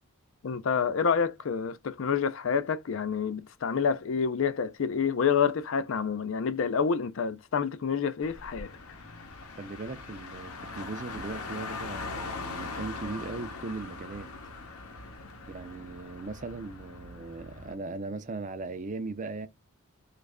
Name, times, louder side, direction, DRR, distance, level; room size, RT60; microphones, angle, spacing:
voice 1, 0.4-8.7, left 6 dB, 60° left, 0.4 m, -28 dB
Car, 8.2-17.7, left 3 dB, 80° left, 0.8 m, -41 dB
voice 2, 9.5-14.3 15.5-19.5, right 3 dB, 35° right, 0.4 m, -38 dB
3.1 x 2.4 x 3.5 m
head